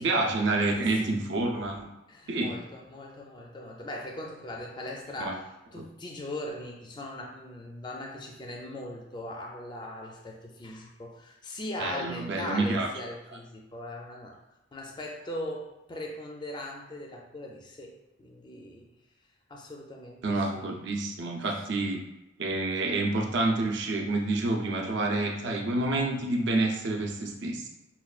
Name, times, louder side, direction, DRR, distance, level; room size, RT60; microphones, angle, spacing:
voice 1, 0.0-1.8 2.3-2.6 5.2-5.3 5.8-5.9 11.8-12.9 20.2-22.0 22.4-27.7, right 2 dB, 65° right, 1 dB, 0.5 m, -28 dB
voice 2, 0.6-1.2 2.1-14.4 14.7-18.9 19.5-20.7 21.6-21.7, left 1 dB, 20° left, 0 dB, 0.4 m, -40 dB
5.6 x 2.2 x 2.4 m, 0.97 s
head